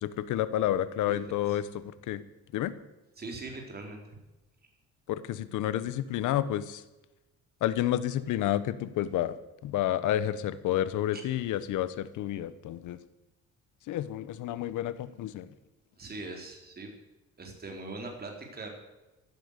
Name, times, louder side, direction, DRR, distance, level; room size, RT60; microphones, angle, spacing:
voice 1, 0.0-2.2 2.5-2.7 5.1-6.8 7.6-9.3 9.6-13.0 13.9-15.5, left 12 dB, 90° left, 15 dB, 1.2 m, -30 dB
voice 2, 3.2-4.2 11.1-11.2 16.0-16.9 17.4-18.7, right 2 dB, 30° right, 2 dB, 4.3 m, -41 dB
16.0 x 12.0 x 6.7 m, 1.0 s
cardioid pair, 120°, 30 cm